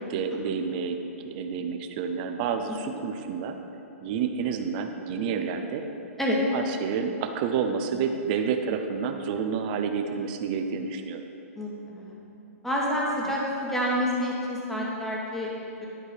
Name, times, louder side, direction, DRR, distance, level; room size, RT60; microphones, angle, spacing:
voice 1, 0.1-1.0 1.2-3.6 4.0-5.8 6.5-11.2 13.2-13.3, right 6 dB, 35° right, 6 dB, 0.6 m, -29 dB
voice 2, 11.5-12.2 12.6-15.5 15.8-15.9, equal, 5° left, -5 dB, 1.3 m, -28 dB
10.5 x 4.7 x 5.1 m, 2.9 s
hypercardioid pair, 145°, 8 cm